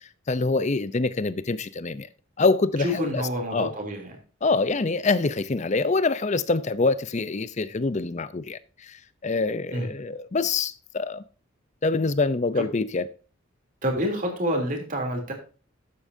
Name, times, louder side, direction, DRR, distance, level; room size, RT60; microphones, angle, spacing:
voice 1, 0.3-2.1 2.4-3.2 3.5-3.7 4.4-9.0 9.2-11.2 11.8-13.1, left 3 dB, 35° left, 0.6 m, -25 dB
voice 2, 2.8-4.1 9.7-9.9 12.6-12.7 13.8-15.3, equal, 40° right, 3.1 m, -28 dB
12.5 x 8.6 x 2.7 m
head